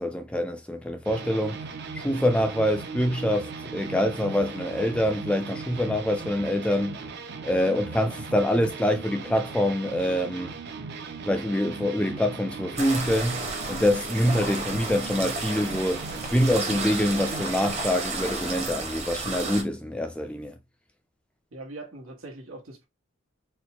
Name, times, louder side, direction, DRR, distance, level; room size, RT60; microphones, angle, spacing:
voice 1, 0.0-1.6 1.9-7.0 7.4-10.5 11.3-16.0 16.3-20.6, left 1 dB, 5° left, 0.3 m, -25 dB
sound 1, 1.0-17.9, right 4 dB, 50° right, 0.5 m, -38 dB
sound 2, 12.8-19.6, right 3 dB, 30° right, 0.8 m, -32 dB
voice 2, 21.5-22.9, right 2 dB, 85° right, 1.2 m, -41 dB
4.3 x 2.1 x 2.8 m
head